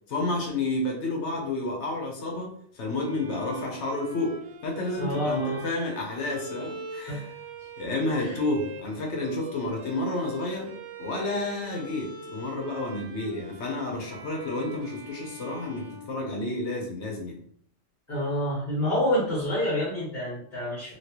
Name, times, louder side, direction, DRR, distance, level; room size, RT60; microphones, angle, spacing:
voice 1, 0.1-7.3 7.8-10.7 11.0-17.4, left 2 dB, 75° left, 0 dB, 1.1 m, -30 dB
Bowed string instrument, 3.0-16.9, right 1 dB, 75° right, 0.8 m, -43 dB
voice 2, 5.0-5.6 7.1-7.2 8.2-8.4 18.1-20.9, equal, 45° left, -10 dB, 1.5 m, -28 dB
3.1 x 2.9 x 2.9 m, 0.64 s
omnidirectional pair, 1.2 m